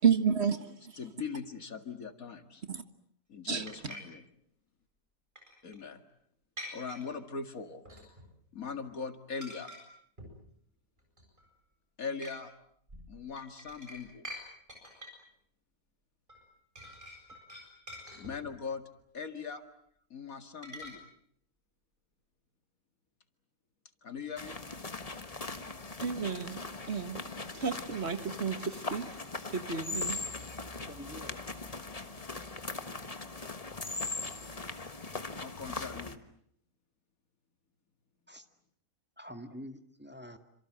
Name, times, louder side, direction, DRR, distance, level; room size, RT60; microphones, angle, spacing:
voice 1, 0.0-0.6 2.7-2.8 3.5-3.7 26.0-27.2 27.5-29.1 29.5-30.2, right 6 dB, 50° right, 1.7 m, -30 dB
voice 2, 1.0-2.6 3.3-4.3 5.6-6.0 6.7-7.8 8.5-9.7 12.0-12.5 13.1-14.2 18.2-18.8 19.1-19.6 20.1-21.0 24.0-24.6 35.4-36.2, left 5 dB, 85° left, 2.5 m, -40 dB
sound 1, 3.7-4.0 5.4-5.8 6.6-7.0 7.9-8.3 8.6-8.9 9.4-9.8 10.2-10.5 11.0-11.5 12.2-12.4 12.9-14.4 14.7-15.2 16.3-16.4 16.8-18.6 20.6-20.9, equal, 35° right, 8.0 m, -46 dB
sound 2, 24.4-36.2, left 3 dB, 25° left, 1.5 m, -40 dB
voice 3, 30.8-31.4 38.3-38.4 39.2-40.4, equal, 5° right, 2.0 m, -46 dB
28.0 x 26.5 x 7.7 m
omnidirectional pair, 1.4 m